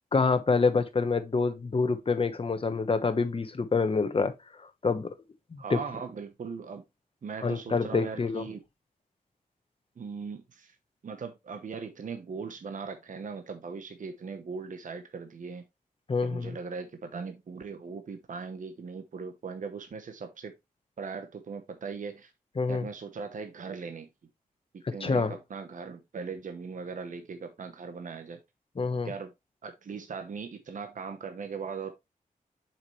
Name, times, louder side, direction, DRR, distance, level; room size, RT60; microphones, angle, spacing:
voice 1, 0.1-4.3 4.8-5.1 5.5-5.8 7.4-8.4 16.1-16.5 22.6-22.9 25.0-25.4 28.8-29.1, left 4 dB, 40° left, 1.1 m, -27 dB
voice 2, 5.6-6.8 7.2-8.6 10.0-10.7 11.0-15.6 16.2-20.5 21.0-22.3 22.7-24.1 24.9-28.4 29.0-29.3 29.6-31.9, right 5 dB, 65° right, 1.0 m, -39 dB
7.2 x 5.9 x 3.2 m
wide cardioid pair, 105°, 15 cm